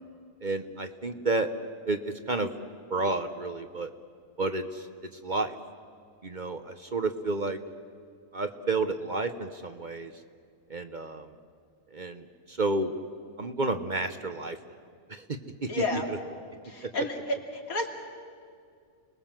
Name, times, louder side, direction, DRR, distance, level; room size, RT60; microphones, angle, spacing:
voice 1, 0.4-1.5 1.9-2.5 2.9-3.9 4.4-4.8 5.2-5.5 6.2-7.6 8.3-10.1 10.7-11.3 11.9-12.2 12.5-12.9 13.4-14.6 15.1-15.2 15.6-15.7, right 2 dB, 40° right, 8 dB, 1.0 m, -30 dB
voice 2, 15.7-16.1 16.6-17.9, left 2 dB, 80° left, 1 dB, 3.2 m, -31 dB
30.0 x 20.5 x 7.5 m, 2.2 s
omnidirectional pair, 1.5 m